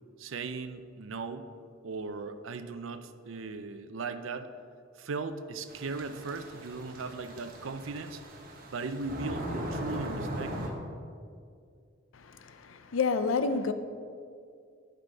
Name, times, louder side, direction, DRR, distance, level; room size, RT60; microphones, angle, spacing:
voice 1, 0.2-1.5 1.8-4.5 5.0-8.2 8.7-10.8, right 4 dB, 75° right, 0.5 m, -38 dB
sound 1, 5.7-10.7, equal, 45° right, 1.2 m, -39 dB
voice 2, 12.1-13.7, left 4 dB, 80° left, 0.5 m, -29 dB
11.5 x 5.4 x 4.2 m
head